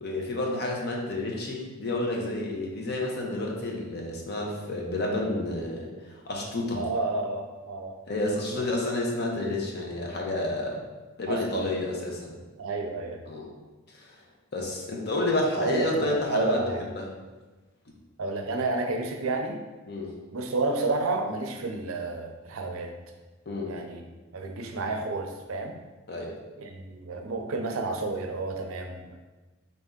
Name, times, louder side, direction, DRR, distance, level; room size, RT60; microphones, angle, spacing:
voice 1, 0.0-6.9 8.1-10.8 11.2-12.4 13.3-13.5 13.9-14.1 14.5-16.6 16.9-17.1 19.9-20.1 23.5-23.8 26.1-26.4, left 2 dB, 50° left, -1 dB, 0.7 m, -30 dB
voice 2, 6.7-7.9 11.3-11.7 12.6-13.2 15.6-16.8 18.2-19.6 20.3-22.9 23.7-24.0 24.3-25.7 26.6-29.1, right 3 dB, 75° right, 3 dB, 0.5 m, -30 dB
4.1 x 2.7 x 3.6 m, 1.2 s
head